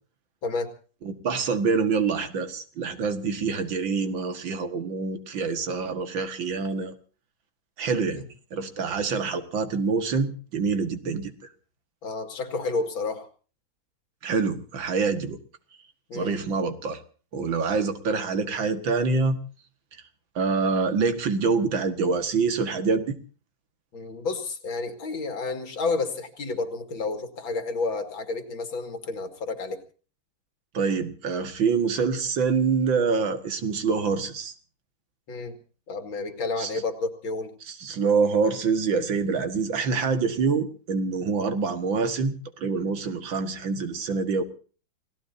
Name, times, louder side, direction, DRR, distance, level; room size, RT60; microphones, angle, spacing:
voice 1, 1.0-6.9 7.8-11.3 14.2-15.4 16.1-17.0 17.3-19.4 20.4-23.2 30.7-34.5 36.6-36.7 37.7-44.4, right 4 dB, 80° right, 8 dB, 2.5 m, -26 dB
voice 2, 12.0-13.3 16.1-16.4 23.9-29.8 35.3-35.6 35.9-37.5, left 3 dB, 90° left, 7 dB, 3.0 m, -30 dB
29.0 x 17.5 x 2.8 m, 0.39 s
omnidirectional pair, 2.1 m